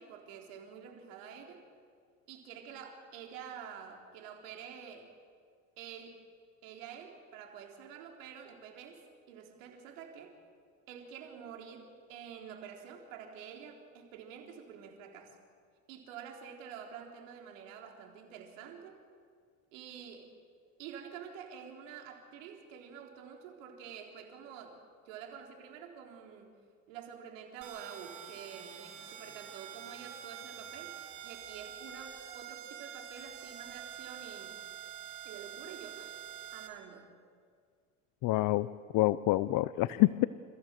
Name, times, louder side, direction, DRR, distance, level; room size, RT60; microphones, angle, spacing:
voice 1, 0.0-1.6 2.3-5.1 5.8-6.2 6.6-9.0 9.3-10.4 10.9-15.4 15.9-19.0 19.7-20.3 20.8-24.8 25.0-26.5 26.9-30.9 31.2-34.6 35.2-36.2 36.5-37.1, right 7 dB, 85° right, 2 dB, 4.0 m, -48 dB
sound 1, 27.6-36.7, right 9 dB, 50° right, 3.6 m, -46 dB
voice 2, 38.2-38.7 38.9-40.3, left 18 dB, 60° left, 16 dB, 0.7 m, -27 dB
28.0 x 15.5 x 7.6 m, 2.1 s
supercardioid pair, 90°, 38 cm